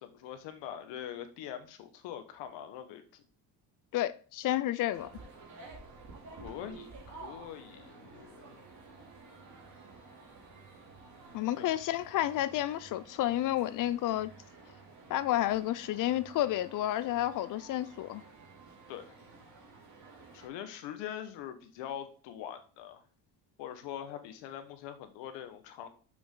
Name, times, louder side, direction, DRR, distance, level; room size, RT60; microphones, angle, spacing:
voice 1, 0.0-3.2 6.4-6.9 7.2-8.6 11.6-11.7 18.9-19.1 20.3-23.0 23.6-25.9, left 10 dB, 85° left, 1.4 m, -43 dB
voice 2, 3.9-5.1 11.3-14.3 15.1-18.2, left 13 dB, 50° left, 0.6 m, -31 dB
sound 1, 4.9-20.5, right 3 dB, 45° right, 3.0 m, -52 dB
7.0 x 6.1 x 3.9 m
cardioid pair, 150°, 41 cm